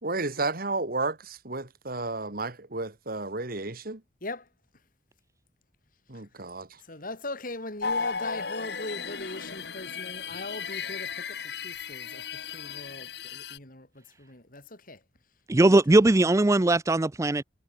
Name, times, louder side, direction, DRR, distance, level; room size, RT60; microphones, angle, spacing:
voice 1, 0.0-4.0 6.1-6.8, right 3 dB, 55° right, 2.5 m, -32 dB
voice 2, 6.8-15.0 15.6-16.1 16.6-16.7, left 2 dB, 50° left, 7.3 m, -40 dB
sound 1, 7.8-13.6, left 5 dB, 70° left, 2.1 m, -35 dB
voice 3, 15.5-17.4, right 2 dB, 15° right, 0.5 m, -20 dB
head